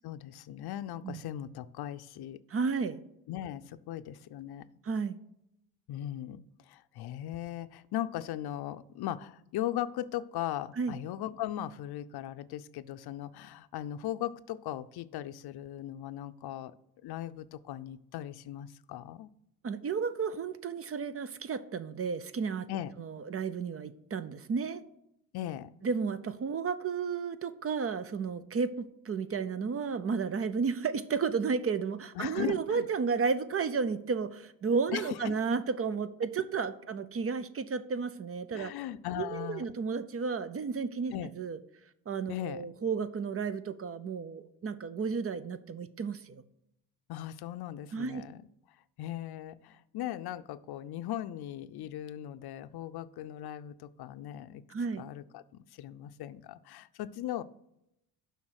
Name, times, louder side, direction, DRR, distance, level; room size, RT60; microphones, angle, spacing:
voice 1, 0.0-2.4 3.3-4.7 5.9-16.7 17.0-19.3 22.7-22.9 25.3-25.7 32.2-32.9 34.9-35.3 38.5-39.6 41.1-41.3 42.3-42.6 47.1-48.5 49.0-54.6 55.0-57.4, left 12 dB, 70° left, 14 dB, 0.6 m, -38 dB
voice 2, 2.5-3.0 4.8-5.2 10.8-10.9 19.6-22.7 23.0-24.8 25.8-38.7 39.2-41.6 42.1-46.4 47.9-48.3 54.7-55.1, right 5 dB, 35° right, 13 dB, 0.6 m, -32 dB
7.3 x 5.7 x 6.3 m, 0.81 s
cardioid pair, 110°, 40 cm